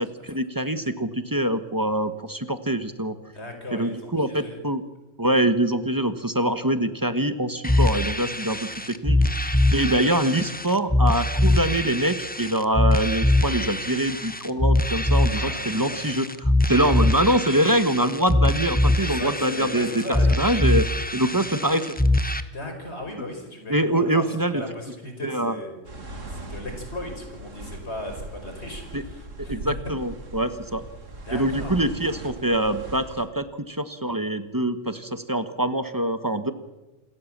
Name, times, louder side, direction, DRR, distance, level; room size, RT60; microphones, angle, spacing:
voice 1, 0.3-3.1 3.7-4.8 5.2-8.6 8.9-16.3 16.7-20.0 20.4-20.9 21.1-21.8 23.7-24.6 25.2-25.6 28.9-29.0 29.5-30.8 31.3-36.5, right 1 dB, 15° right, 10 dB, 1.3 m, -24 dB
voice 2, 3.3-4.6 10.0-10.1 15.3-16.0 18.6-20.8 21.2-21.3 22.5-26.0 26.3-29.7 31.2-31.8, left 1 dB, 55° left, 3 dB, 5.5 m, -37 dB
sound 1, 7.6-22.4, left 1 dB, 10° left, 0.9 m, -23 dB
sound 2, 25.8-33.3, right 2 dB, 75° right, 2.7 m, -39 dB
27.5 x 13.5 x 7.5 m, 1.1 s
omnidirectional pair, 1.3 m